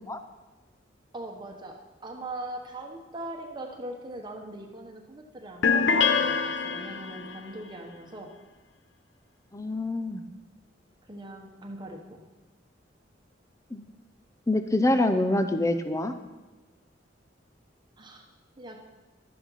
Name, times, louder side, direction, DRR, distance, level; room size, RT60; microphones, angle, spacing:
voice 1, 1.1-8.3 11.1-12.2 18.0-18.2 18.6-18.9, right 1 dB, 25° right, 2 dB, 1.1 m, -41 dB
sound 1, 5.6-7.4, left 5 dB, 75° left, 0.7 m, -24 dB
voice 2, 9.5-10.2 13.7-13.9 14.5-16.1, left 1 dB, 15° left, 9 dB, 0.6 m, -25 dB
12.0 x 8.5 x 5.6 m, 1.2 s
head